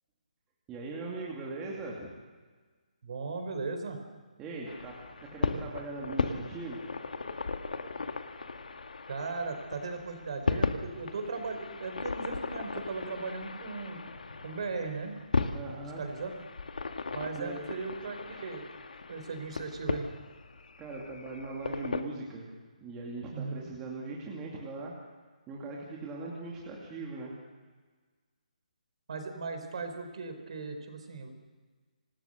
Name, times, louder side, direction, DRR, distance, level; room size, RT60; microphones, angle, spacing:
voice 1, 0.7-2.1 4.4-5.0 5.2-6.8 15.5-16.0 17.4-17.6 20.8-22.5 22.8-24.9 25.5-27.3, right 3 dB, 10° right, -4 dB, 2.6 m, -40 dB
voice 2, 3.0-4.0 9.1-14.0 14.4-15.2 16.0-16.4 17.1-18.6 19.1-20.1 23.3-23.7 29.1-31.3, right 4 dB, 45° right, 6 dB, 4.5 m, -37 dB
sound 1, 4.7-22.0, left 4 dB, 80° left, 2.0 m, -36 dB
26.5 x 19.0 x 6.7 m, 1.4 s
hypercardioid pair, 170°, 4 cm